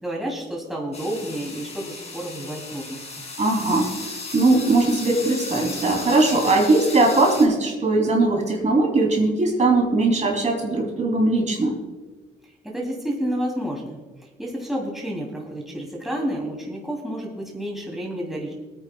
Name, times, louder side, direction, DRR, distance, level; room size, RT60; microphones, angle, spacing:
voice 1, 0.0-3.0 12.4-18.5, equal, ahead, -2 dB, 2.8 m, -30 dB
sound 1, 0.9-7.5, left 3 dB, 35° left, 2.6 m, -35 dB
voice 2, 3.4-3.9 4.3-11.7, right 2 dB, 35° right, 0 dB, 2.8 m, -20 dB
24.0 x 9.3 x 2.3 m, 1.2 s
cardioid pair, 90°, 20 cm